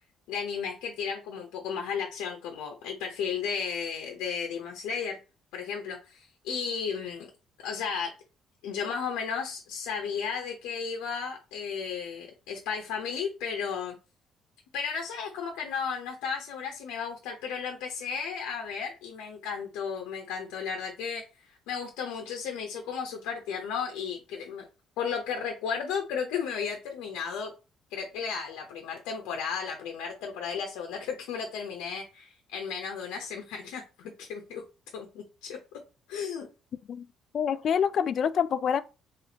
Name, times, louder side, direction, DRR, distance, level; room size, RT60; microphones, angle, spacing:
voice 1, 0.3-5.2 5.5-7.3 7.6-8.1 8.6-14.0 14.7-24.7 25.0-27.5 27.9-34.6 34.9-35.8 36.1-36.5, left 6 dB, 85° left, 0.7 m, -34 dB
voice 2, 37.3-38.8, left 7 dB, 55° left, 0.3 m, -26 dB
4.2 x 3.3 x 2.8 m
supercardioid pair, 80°, 0 cm